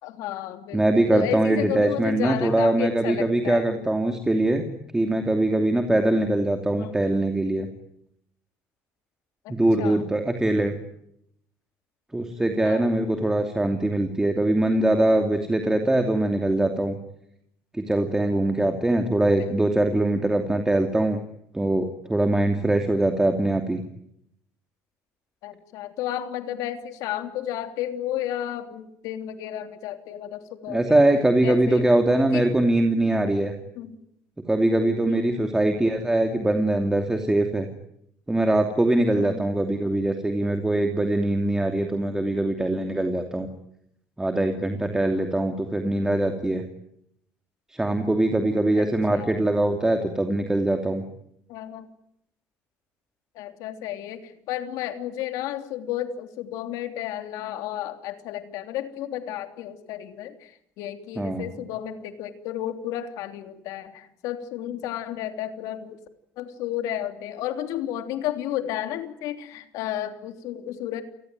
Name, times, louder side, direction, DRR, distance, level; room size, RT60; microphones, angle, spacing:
voice 1, 0.0-3.7 6.7-6.9 9.4-10.1 12.6-12.9 19.4-19.6 25.4-31.0 31.4-31.8 32.2-32.5 33.8-34.0 35.1-35.4 39.1-39.4 48.8-49.4 51.5-51.9 53.3-66.0 66.4-71.0, left 11 dB, 80° left, 7 dB, 3.3 m, -32 dB
voice 2, 0.7-4.6 4.9-7.7 9.5-10.8 12.1-17.0 17.7-21.2 21.5-23.8 30.7-33.5 34.5-37.7 38.3-43.5 44.2-46.6 47.7-51.0 61.2-61.4, right 1 dB, 10° right, 5 dB, 2.8 m, -22 dB
30.0 x 19.5 x 9.3 m, 0.74 s
cardioid pair, 120°, 6 cm